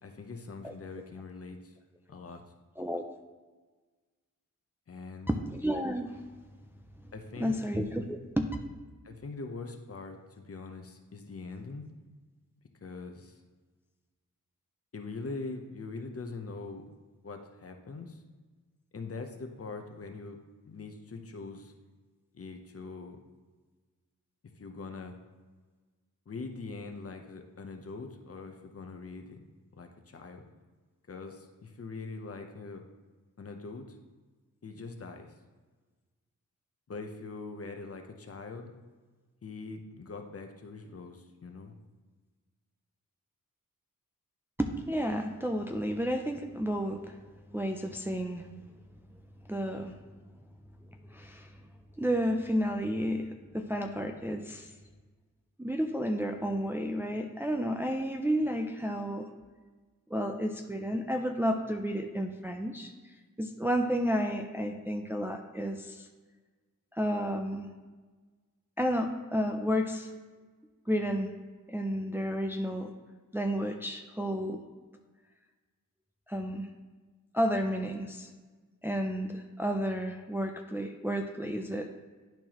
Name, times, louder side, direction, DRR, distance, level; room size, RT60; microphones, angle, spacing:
voice 1, 0.0-1.7 2.1-2.4 4.9-5.4 7.1-7.6 9.1-11.9 12.8-13.4 14.9-16.8 17.2-18.2 18.9-20.4 20.6-21.7 22.3-23.2 24.6-25.1 26.3-29.4 29.7-30.4 31.1-32.8 33.4-34.0 34.6-35.3 36.9-38.7 39.4-41.7, left 3 dB, 45° left, 4 dB, 0.8 m, -42 dB
voice 2, 5.3-6.2 7.0-7.1 7.4-8.6 44.6-47.2 47.5-48.5 49.5-49.9 51.1-51.5 52.0-54.7 55.6-59.3 60.1-62.9 63.4-66.1 66.9-67.7 68.8-70.1 70.9-71.3 71.7-72.9 73.3-74.6 76.3-76.7 77.3-78.3 78.8-81.9, equal, 5° right, 3 dB, 0.4 m, -31 dB
10.5 x 4.5 x 3.0 m, 1.3 s
wide cardioid pair, 85°, 33 cm